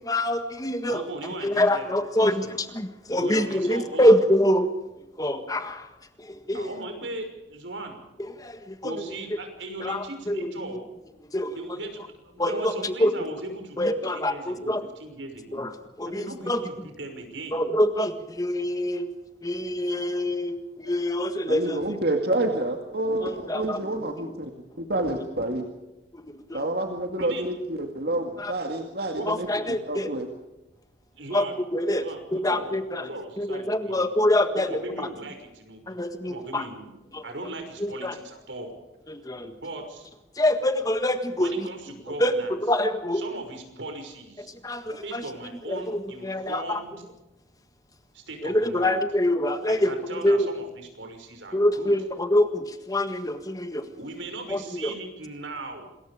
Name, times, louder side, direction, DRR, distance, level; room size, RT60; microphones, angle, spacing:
voice 1, 0.0-1.0 1.4-4.7 5.2-5.9 6.2-6.7 8.2-9.2 9.8-10.8 11.2-11.9 12.4-13.1 13.8-14.9 15.5-16.6 17.5-19.1 19.4-22.0 23.2-24.1 26.1-26.7 28.4-28.5 29.3-30.1 31.3-33.1 33.4-35.1 35.9-36.7 37.1-37.3 37.8-38.2 39.1-39.5 40.3-41.7 42.2-43.2 44.5-45.2 45.7-46.8 48.4-50.5 51.5-53.9 54.5-54.9, left 1 dB, 20° left, 8 dB, 1.6 m, -25 dB
voice 2, 0.9-1.8 2.2-2.5 3.2-4.2 6.5-8.0 8.8-10.8 11.5-14.7 15.0-15.7 16.1-17.6 27.2-27.4 29.1-29.3 31.1-31.6 32.0-34.0 34.5-36.0 36.2-37.0 37.2-38.7 39.4-40.1 41.4-42.5 43.2-44.6 45.0-46.9 48.1-49.0 49.7-51.9 54.0-55.9, right 2 dB, 85° right, 5 dB, 5.9 m, -38 dB
voice 3, 21.5-24.5 24.8-25.7 26.5-29.5 29.9-30.3, right 1 dB, 55° right, 3 dB, 2.2 m, -28 dB
27.0 x 21.5 x 5.0 m, 1.0 s
head